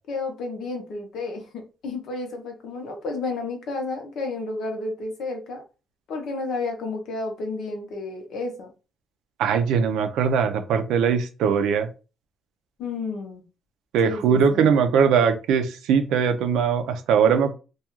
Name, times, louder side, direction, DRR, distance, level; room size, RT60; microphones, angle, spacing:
voice 1, 0.1-5.6 6.1-8.7 12.8-13.4 14.0-14.8, left 3 dB, 75° left, 0.7 m, -31 dB
voice 2, 9.4-11.9 13.9-17.5, right 6 dB, 85° right, 0.4 m, -21 dB
2.3 x 2.3 x 2.9 m
cardioid pair, 80°, 0 cm